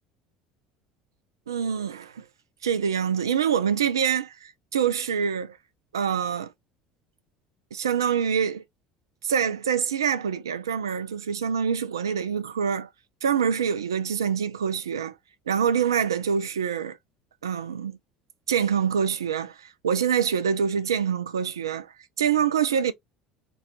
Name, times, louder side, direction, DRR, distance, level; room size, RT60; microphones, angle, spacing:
voice 1, 1.5-2.2 2.6-5.6 5.9-6.5 7.7-8.6 9.2-12.9 13.2-15.1 15.5-17.0 17.4-18.0 18.5-22.9, right 7 dB, 80° right, 0.3 m, -25 dB
2.3 x 2.2 x 2.8 m
figure-of-eight pair, 65°, 2 cm